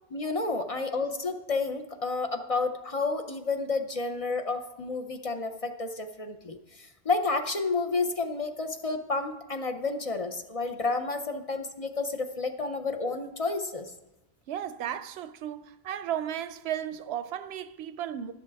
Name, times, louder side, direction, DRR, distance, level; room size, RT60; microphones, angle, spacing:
voice 1, 0.1-13.9, left 3 dB, 40° left, 0.6 m, -30 dB
voice 2, 14.5-18.3, right 10 dB, 85° right, 0.8 m, -35 dB
12.0 x 10.5 x 3.4 m
omnidirectional pair, 1.0 m